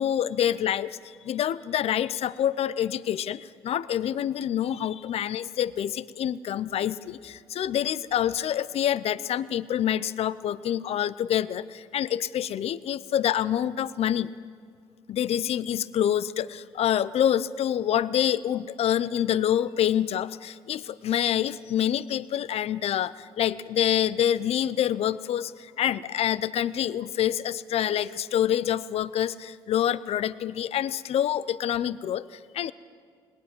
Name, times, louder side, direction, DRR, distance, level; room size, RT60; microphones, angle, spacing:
voice 1, 0.0-14.3 15.1-32.7, left 10 dB, 60° left, 17 dB, 0.7 m, -27 dB
20.0 x 19.0 x 7.7 m, 2.2 s
supercardioid pair, 65°, 12 cm